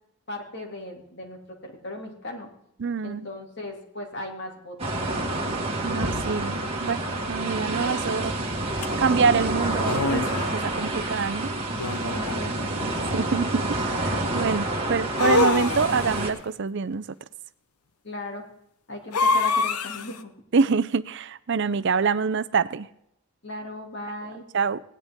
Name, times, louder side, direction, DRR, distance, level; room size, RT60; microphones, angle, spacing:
voice 1, 0.3-2.5 3.0-5.2 12.0-12.9 18.0-18.4 18.9-20.3 23.4-24.4, left 1 dB, 50° left, 2 dB, 2.6 m, -37 dB
voice 2, 2.8-3.3 5.8-7.0 7.3-8.3 8.7-11.5 12.7-12.8 13.1-17.1 20.5-22.9 24.5-24.8, right 5 dB, 50° right, 14 dB, 0.5 m, -26 dB
sound 1, 4.8-16.3, right 1 dB, 25° right, 2.0 m, -28 dB
sound 2, 8.8-8.9 9.8-10.6 11.8-12.5 15.2-16.2 19.1-20.2, left 4 dB, 85° left, 0.8 m, -25 dB
17.5 x 11.0 x 3.6 m, 0.75 s
head